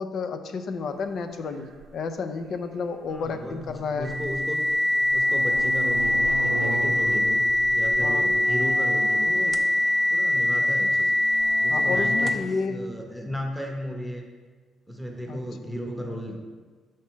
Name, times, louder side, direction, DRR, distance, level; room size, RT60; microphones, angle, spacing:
voice 1, 0.0-4.1 8.0-8.3 11.7-12.8 15.3-15.4, left 4 dB, 65° left, 8 dB, 0.5 m, -31 dB
sound 1, 1.8-1.9 3.6-4.4 4.7-10.2 11.0-12.3, right 5 dB, 85° right, 0.5 m, -37 dB
voice 2, 3.1-4.6 5.1-7.4 7.7-9.5 10.1-11.1 11.6-14.2 14.9-16.4, equal, ahead, 1 dB, 0.8 m, -35 dB
sound 2, 4.0-12.6, left 1 dB, 35° right, 0.5 m, -23 dB
5.9 x 4.6 x 4.5 m, 1.4 s
cardioid pair, 90°, 0 cm